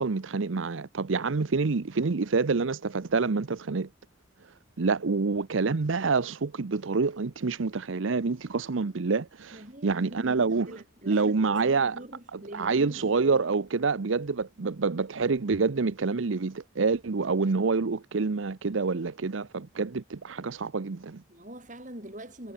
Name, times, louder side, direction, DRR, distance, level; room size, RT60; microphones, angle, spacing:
voice 1, 0.0-3.9 4.8-10.7 11.1-12.0 12.3-21.2, right 4 dB, 85° right, 0.7 m, -27 dB
voice 2, 9.5-13.2 14.6-14.8 21.3-22.5, right 1 dB, 40° right, 7.8 m, -44 dB
head